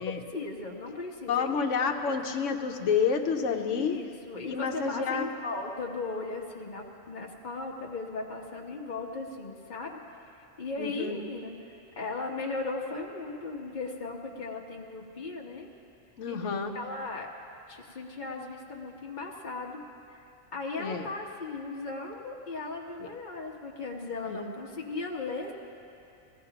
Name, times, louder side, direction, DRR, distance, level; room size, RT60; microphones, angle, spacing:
voice 1, 0.0-2.2 3.7-15.7 16.3-16.4 16.7-17.3 17.7-19.8 20.1-20.2 20.5-25.5, left 3 dB, 40° left, 0 dB, 1.3 m, -37 dB
voice 2, 1.3-4.0 4.5-5.3 10.8-11.2 16.2-16.7 20.8-21.1 23.0-23.1 24.2-24.5, left 6 dB, 75° left, 5 dB, 1.2 m, -29 dB
20.5 x 16.0 x 2.9 m, 2.6 s
omnidirectional pair, 1.3 m